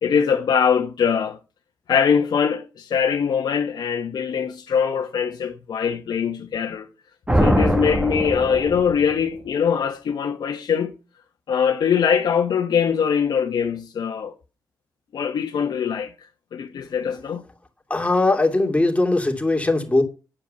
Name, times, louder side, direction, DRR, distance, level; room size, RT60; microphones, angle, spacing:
voice 1, 0.0-1.4 1.9-6.9 7.4-11.0 11.5-14.3 15.1-16.1 16.5-17.5, left 7 dB, 80° left, 1.1 m, -22 dB
sound 1, 7.3-9.2, right 1 dB, 15° right, 1.4 m, -22 dB
voice 2, 17.9-20.0, left 2 dB, 20° left, 2.7 m, -20 dB
10.0 x 5.2 x 6.8 m
cardioid pair, 75°, 7 cm